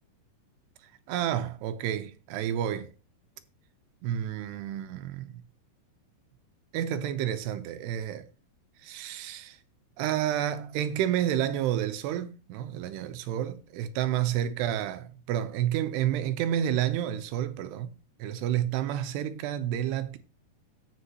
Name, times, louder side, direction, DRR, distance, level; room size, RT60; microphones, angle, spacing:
voice 1, 1.1-2.9 4.0-5.4 6.7-8.3 8.8-9.6 10.0-17.9 18.2-20.2, right 11 dB, 85° right, 2.9 m, -30 dB
16.0 x 6.0 x 2.9 m
omnidirectional pair, 4.7 m